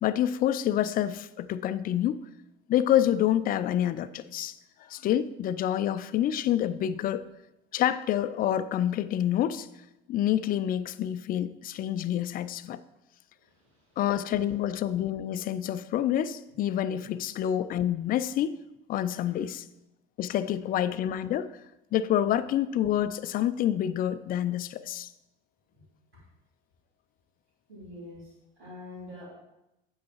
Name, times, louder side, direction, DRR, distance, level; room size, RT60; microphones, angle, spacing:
voice 1, 0.0-2.2 2.7-7.2 7.7-9.7 10.1-12.8 14.0-18.6 18.9-19.7 20.2-21.5 21.9-25.1, left 11 dB, 30° left, 14 dB, 0.4 m, -27 dB
voice 2, 13.4-14.0 17.0-17.2 27.7-29.3, left 2 dB, 85° right, -12 dB, 2.7 m, -46 dB
8.3 x 8.3 x 3.0 m, 0.92 s
figure-of-eight pair, 65°, 30 cm